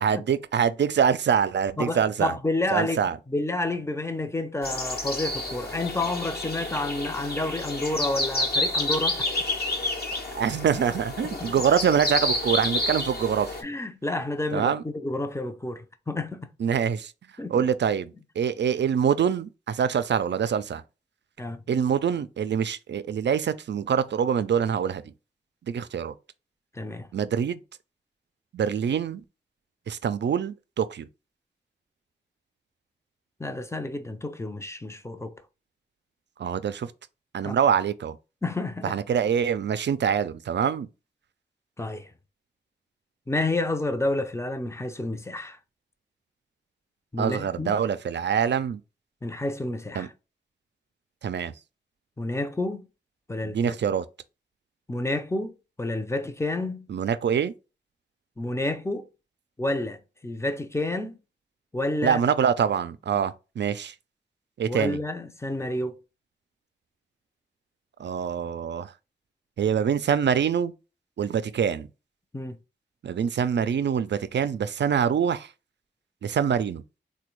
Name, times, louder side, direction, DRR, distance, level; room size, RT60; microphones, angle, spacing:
voice 1, 0.0-2.3 2.7-3.2 10.3-13.6 14.5-14.8 16.6-17.1 17.5-20.8 21.7-25.0 25.7-26.1 27.1-27.6 28.5-29.2 29.9-31.1 36.4-36.9 37.3-38.2 38.9-40.9 47.2-48.8 50.0-50.1 51.2-51.5 53.4-54.0 56.9-57.5 62.0-63.9 64.6-65.0 68.0-68.9 69.6-70.7 71.2-71.9 73.0-75.5 76.2-76.8, right 7 dB, 65° right, 0.4 m, -25 dB
voice 2, 1.8-9.3 11.2-11.5 13.6-16.5 17.4-17.7 21.4-21.6 26.7-27.1 33.4-35.4 37.4-37.6 38.4-39.0 41.8-42.1 43.3-45.6 47.1-47.8 49.2-50.1 52.2-52.9 53.3-53.8 54.9-56.9 58.4-59.1 59.6-61.2 61.7-62.2 64.6-66.0 72.3-72.6, left 2 dB, 15° left, 0.6 m, -30 dB
sound 1, 4.6-13.6, left 2 dB, 55° left, 1.0 m, -29 dB
3.3 x 2.2 x 3.0 m
cardioid pair, 45°, 19 cm